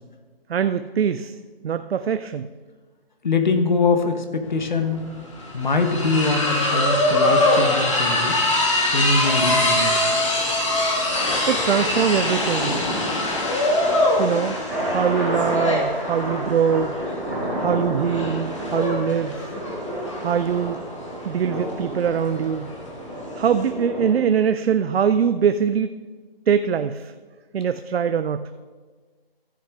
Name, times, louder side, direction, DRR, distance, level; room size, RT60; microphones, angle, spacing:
voice 1, 0.5-1.4 1.6-2.5 11.5-12.8 14.2-14.6 14.9-17.0 17.6-19.5 20.2-20.8 21.2-22.7 23.3-26.0 26.5-27.1 27.5-28.4, right 7 dB, 80° right, 10 dB, 0.5 m, -22 dB
voice 2, 3.2-5.0 5.5-8.4 8.9-9.9, left 3 dB, 50° left, 7 dB, 1.1 m, -23 dB
sound 1, 4.5-4.6 4.8-23.7, left 1 dB, 30° left, 1.5 m, -23 dB
sound 2, 14.1-24.1, equal, 5° left, 2.4 m, -30 dB
14.5 x 6.8 x 3.5 m, 1.4 s
hypercardioid pair, 170°, 30 cm